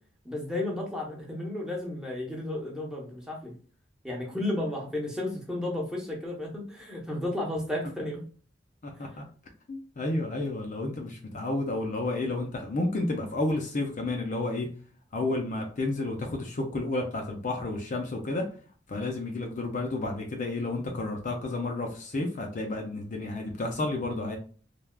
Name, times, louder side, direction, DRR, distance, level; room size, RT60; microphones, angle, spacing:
voice 1, 0.2-3.5 4.0-8.2 9.0-9.1, left 1 dB, 5° right, -2 dB, 0.9 m, -33 dB
voice 2, 8.8-9.2 9.7-14.7 15.1-18.4 18.9-24.4, left 2 dB, 45° left, 2 dB, 0.5 m, -31 dB
3.3 x 2.3 x 2.2 m, 0.41 s
head